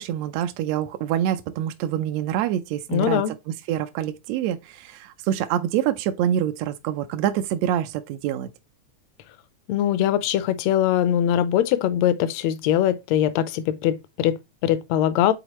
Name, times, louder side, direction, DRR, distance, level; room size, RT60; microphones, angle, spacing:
voice 1, 0.0-3.2 3.7-8.5, right 11 dB, 80° right, 1.6 m, -26 dB
voice 2, 2.9-3.3 9.7-15.3, left 11 dB, 75° left, 1.7 m, -22 dB
8.1 x 4.0 x 3.0 m
omnidirectional pair, 3.4 m